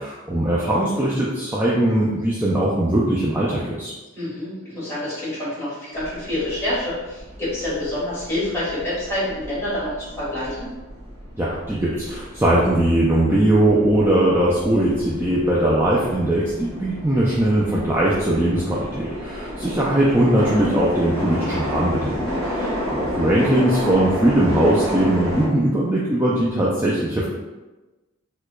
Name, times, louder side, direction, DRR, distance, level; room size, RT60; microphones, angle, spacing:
voice 1, 0.0-3.9 11.4-22.2 22.9-27.2, right 1 dB, 10° right, -6 dB, 0.3 m, -20 dB
voice 2, 4.1-10.7 22.3-22.7, left 1 dB, 15° left, -10 dB, 1.5 m, -27 dB
sound 1, 5.9-25.5, left 1 dB, 80° right, 1.0 m, -31 dB
4.6 x 2.2 x 2.3 m, 1.1 s
head